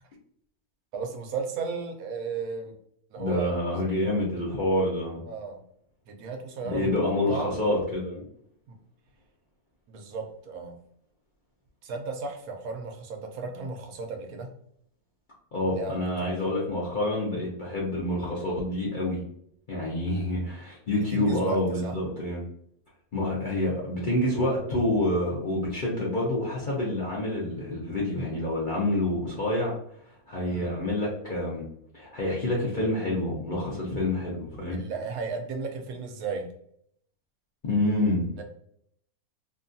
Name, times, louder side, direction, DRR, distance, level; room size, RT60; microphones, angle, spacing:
voice 1, 0.9-2.7 3.1-3.6 3.9-4.1 5.3-5.6 6.1-6.9 7.3-7.5 8.7-8.8 9.9-10.7 11.8-14.5 15.7-16.5 20.9-22.0 30.5-30.7 34.7-36.5 38.4-38.5, right 4 dB, 75° right, 4 dB, 1.1 m, -35 dB
voice 2, 3.2-5.2 6.6-8.2 15.5-19.2 19.7-22.4 23.1-29.8 30.3-31.7 31.9-34.8 37.6-38.3, left 1 dB, 50° left, -5 dB, 0.6 m, -27 dB
2.8 x 2.3 x 2.6 m, 0.68 s
omnidirectional pair, 1.6 m